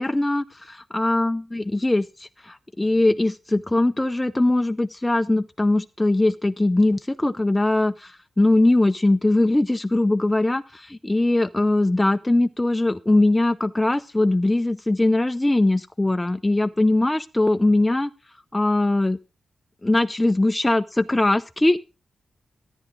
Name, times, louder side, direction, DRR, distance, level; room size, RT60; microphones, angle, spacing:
voice 1, 0.0-18.1 18.5-19.2 19.8-21.8, left 2 dB, 15° left, 9 dB, 0.5 m, -21 dB
13.5 x 9.9 x 3.7 m, 0.30 s
cardioid pair, 90°, 0 cm